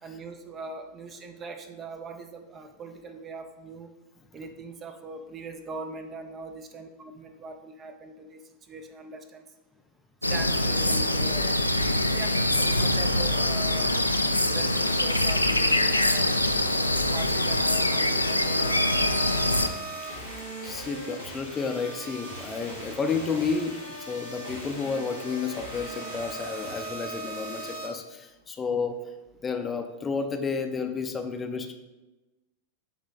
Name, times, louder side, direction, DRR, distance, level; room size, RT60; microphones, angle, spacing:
voice 1, 0.0-3.9 4.3-9.5 10.3-11.6 12.1-14.0 14.5-19.4, right 3 dB, 25° right, 6 dB, 0.6 m, -41 dB
sound 1, 10.2-19.7, left 1 dB, 85° left, 0.4 m, -24 dB
sound 2, 18.5-27.9, right 2 dB, 80° right, 1.9 m, -39 dB
voice 2, 20.6-29.0 29.4-31.7, left 5 dB, 20° left, 5 dB, 0.6 m, -31 dB
7.9 x 3.2 x 3.9 m, 1.1 s
figure-of-eight pair, 90°, 0 cm